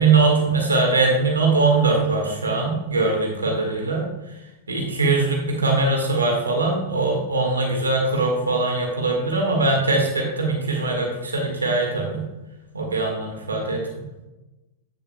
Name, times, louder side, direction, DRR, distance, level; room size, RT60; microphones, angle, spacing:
voice 1, 0.0-4.4 4.7-12.2 12.7-13.8, right 3 dB, 90° right, 0 dB, 1.7 m, -21 dB
8.4 x 7.2 x 2.3 m, 1.0 s
hypercardioid pair, 100°, 0 cm